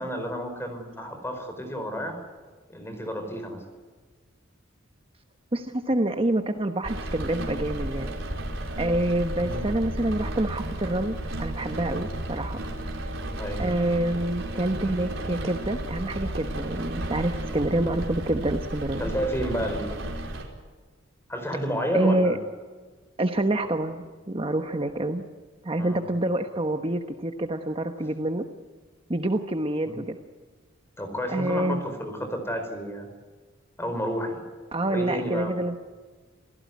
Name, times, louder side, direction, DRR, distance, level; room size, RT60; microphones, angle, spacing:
voice 1, 0.0-2.2 2.7-3.7 9.4-9.6 13.4-13.6 19.0-20.0 21.3-22.4 25.8-26.0 29.8-30.0 31.0-33.1 33.8-34.4 34.9-35.5, equal, 10° left, 6 dB, 5.0 m, -31 dB
voice 2, 5.5-8.1 8.8-12.6 12.8-13.0 13.6-19.1 21.9-22.4 23.2-25.2 25.6-28.4 29.1-30.2 31.3-31.8 34.7-35.8, right 1 dB, 25° right, 6 dB, 1.2 m, -27 dB
Rain, 6.8-20.4, right 1 dB, 65° right, 5.1 m, -33 dB
28.0 x 16.5 x 9.5 m, 1.4 s
head